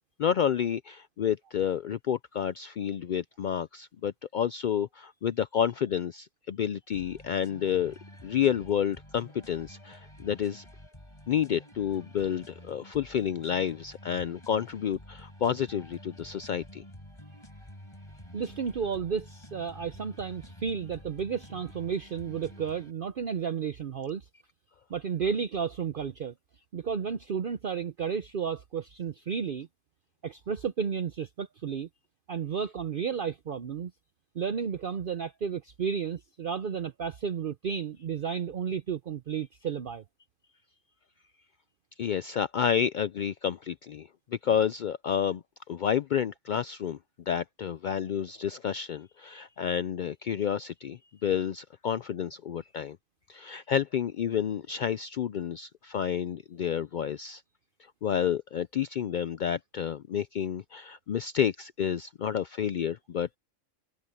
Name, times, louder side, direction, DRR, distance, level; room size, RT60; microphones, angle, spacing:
voice 1, 0.2-10.6 11.3-16.8 42.0-45.4 45.7-47.0 47.3-53.0 53.3-57.4 58.0-63.4, left 8 dB, 85° left, 0.4 m, -30 dB
sound 1, 6.9-22.9, equal, 20° left, 8.1 m, -50 dB
voice 2, 18.3-24.3 24.9-26.3 26.7-29.7 30.2-31.9 32.3-33.9 34.3-40.0, right 7 dB, 50° right, 0.8 m, -32 dB
omnidirectional pair, 1.4 m